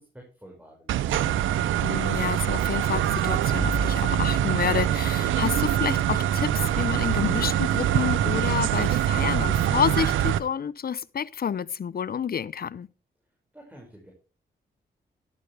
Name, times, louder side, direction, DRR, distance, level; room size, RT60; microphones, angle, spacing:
voice 1, 0.4-1.0 13.5-14.1, right 1 dB, 5° right, 5.5 m, -49 dB
sound 1, 0.9-10.4, right 11 dB, 90° right, 0.6 m, -24 dB
voice 2, 1.8-12.9, left 7 dB, 50° left, 0.6 m, -29 dB
sound 2, 3.5-6.0, right 4 dB, 35° right, 1.7 m, -33 dB
12.5 x 12.0 x 3.3 m
supercardioid pair, 50°, 20 cm